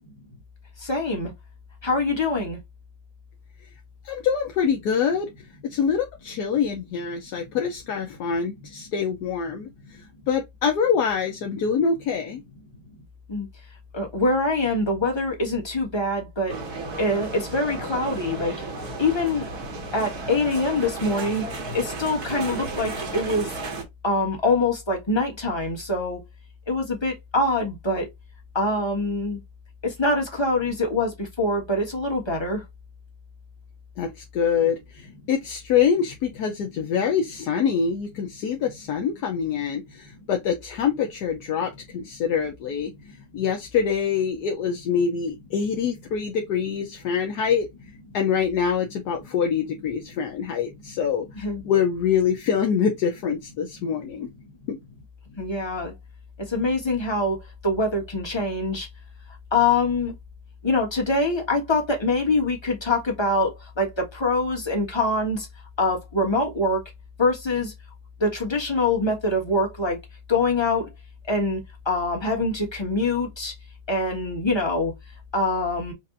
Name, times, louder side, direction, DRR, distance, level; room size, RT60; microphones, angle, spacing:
voice 1, 0.8-1.3 1.8-2.6 13.3-13.5 13.9-16.5 17.0-18.5 19.0-19.5 19.9-21.4 21.7-23.5 24.0-26.2 26.7-28.1 28.5-29.4 29.8-32.6 43.1-43.2 51.3-51.6 55.3-55.9 56.4-57.4 57.6-58.9 59.5-60.1 60.6-65.5 65.8-66.8 67.2-67.7 68.2-70.0 70.3-70.9 71.3-73.5 73.9-74.9 75.3-75.9, left 2 dB, 15° left, 1.3 m, -24 dB
voice 2, 4.0-5.3 5.6-9.7 10.3-12.4 34.0-42.9 43.3-47.7 48.1-51.2 51.6-54.3 54.7-54.8, left 7 dB, 70° left, 1.2 m, -25 dB
sound 1, 16.5-23.8, right 3 dB, 60° right, 1.9 m, -33 dB
5.5 x 2.5 x 2.5 m
omnidirectional pair, 1.9 m